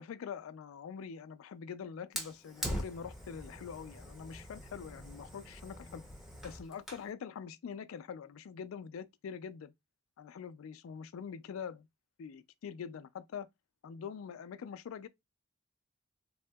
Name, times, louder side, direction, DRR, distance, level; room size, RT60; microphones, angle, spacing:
voice 1, 0.0-6.0 6.4-9.7 10.2-11.9 12.2-13.5 13.8-15.1, left 7 dB, 80° left, 0.3 m, -44 dB
Fire, 2.1-7.1, equal, ahead, 0.6 m, -43 dB
3.4 x 2.7 x 2.2 m
head